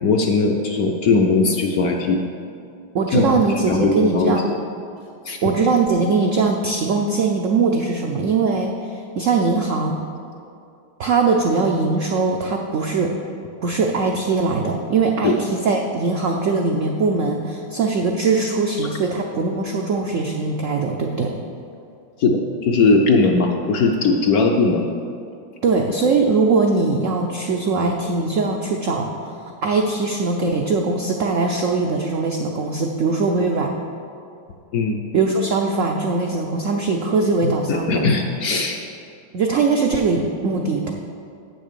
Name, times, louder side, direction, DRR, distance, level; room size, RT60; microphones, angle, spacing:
voice 1, 0.0-2.2 3.1-4.4 5.3-5.4 15.2-15.4 22.2-24.9 34.7-35.0 37.4-38.8, left 3 dB, 65° left, 2 dB, 0.9 m, -19 dB
voice 2, 2.9-4.5 5.4-10.0 11.0-13.1 13.6-21.3 25.6-33.7 35.1-38.0 39.3-40.9, right 4 dB, 85° right, 1 dB, 0.6 m, -21 dB
8.0 x 6.4 x 6.8 m, 2.5 s
omnidirectional pair, 2.1 m